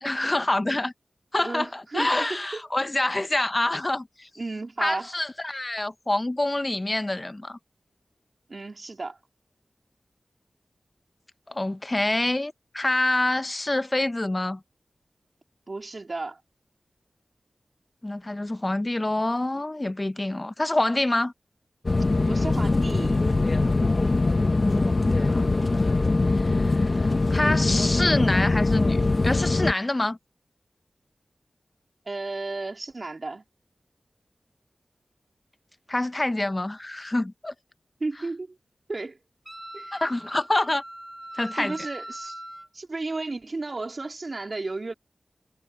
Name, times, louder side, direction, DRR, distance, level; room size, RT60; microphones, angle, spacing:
voice 1, 0.0-0.9 1.3-4.3 4.8-7.6 11.5-14.6 18.0-21.3 24.4-25.5 25.8-26.0 26.3-30.2 35.9-37.5 39.9-40.8 41.3-41.7, left 2 dB, 35° left, 0.8 m, -26 dB
voice 2, 1.4-2.6 4.4-5.1 8.5-9.2 15.7-16.4 22.3-23.4 32.1-33.4 38.0-38.6 38.9-39.2 39.7-40.0 41.6-42.4 42.7-44.9, right 3 dB, 55° right, 3.7 m, -33 dB
sound 1, 21.8-29.7, left 3 dB, 55° left, 1.3 m, -22 dB
Wind instrument woodwind instrument, 39.4-42.7, right 1 dB, 20° right, 2.6 m, -40 dB
cardioid pair, 40°, 0 cm